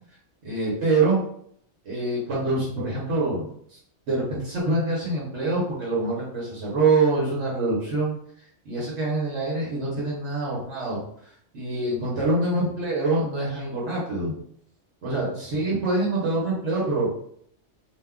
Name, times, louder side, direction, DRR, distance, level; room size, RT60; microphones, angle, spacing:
voice 1, 0.4-1.2 1.8-3.8 4.1-8.1 8.7-11.0 11.5-14.3 15.0-17.1, right 2 dB, 75° right, -6 dB, 1.1 m, -25 dB
2.6 x 2.2 x 3.5 m, 0.67 s
omnidirectional pair, 1.2 m